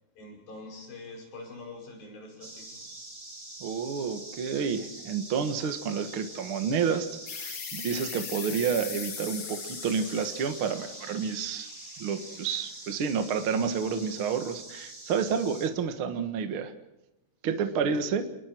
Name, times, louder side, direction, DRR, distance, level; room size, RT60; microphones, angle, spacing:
voice 1, 0.2-2.9, left 2 dB, 60° left, 1 dB, 7.6 m, -44 dB
sound 1, 2.4-15.7, right 2 dB, 20° right, 0.9 m, -45 dB
voice 2, 3.6-7.1 7.4-11.7 12.0-16.7 17.4-18.3, right 6 dB, 60° right, 8 dB, 1.4 m, -29 dB
sound 2, 7.3-12.5, left 8 dB, 85° left, 4.7 m, -40 dB
29.0 x 21.0 x 4.6 m, 0.93 s
omnidirectional pair, 4.7 m